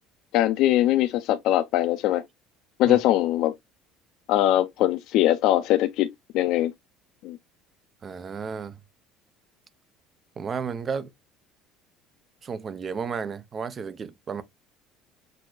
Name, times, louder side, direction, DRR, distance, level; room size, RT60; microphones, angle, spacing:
voice 1, 0.3-2.2 2.8-3.5 4.3-6.7 7.2-7.4, left 14 dB, 60° left, 0.3 m, -22 dB
voice 2, 8.0-8.8 10.4-11.1 12.4-14.4, right 6 dB, 25° right, 0.5 m, -33 dB
6.1 x 2.6 x 2.3 m
cardioid pair, 160°, 0 cm